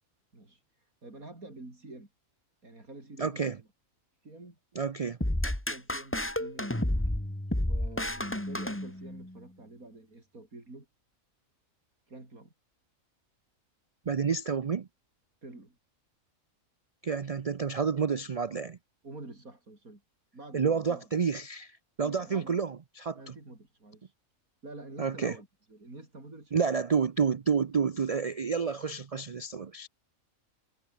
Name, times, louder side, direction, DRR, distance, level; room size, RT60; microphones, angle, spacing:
voice 1, 0.3-2.1 2.6-3.7 4.2-4.6 5.4-7.0 7.7-10.9 12.1-12.5 15.4-15.8 19.0-20.0 20.3-21.1 22.0-22.6 23.2-24.1 24.6-26.7, right 2 dB, 90° right, 6.2 m, -48 dB
voice 2, 3.2-3.6 4.8-5.2 14.1-14.9 17.0-18.8 20.5-23.2 25.0-25.3 26.5-29.9, right 6 dB, 50° right, 0.4 m, -29 dB
sound 1, 5.2-9.4, left 1 dB, 10° left, 2.0 m, -31 dB
omnidirectional pair, 1.5 m